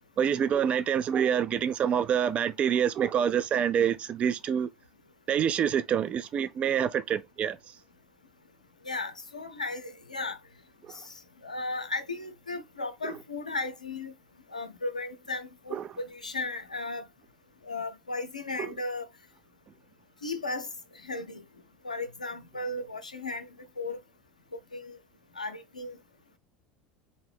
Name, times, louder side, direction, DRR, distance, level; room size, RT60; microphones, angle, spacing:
voice 1, 0.2-4.7 5.3-7.6 10.8-11.0 15.7-15.9 18.6-18.7, right 8 dB, 30° right, 0.4 m, -26 dB
voice 2, 8.9-10.4 10.9-11.0 11.4-14.1 14.5-17.1 17.6-19.1 20.2-20.7 21.0-21.4 21.8-23.5 23.8-24.0 24.7-25.0 25.4-26.0, left 3 dB, 85° left, 0.6 m, -35 dB
4.2 x 2.7 x 3.1 m
figure-of-eight pair, 70°, 4 cm